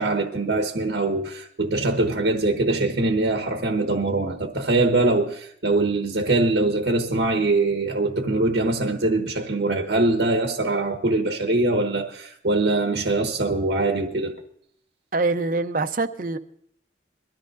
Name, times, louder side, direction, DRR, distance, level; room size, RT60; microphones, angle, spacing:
voice 1, 0.0-14.3, right 2 dB, 75° right, 1.2 m, -23 dB
voice 2, 15.1-16.4, right 3 dB, 45° right, 0.7 m, -24 dB
22.5 x 13.5 x 2.6 m
head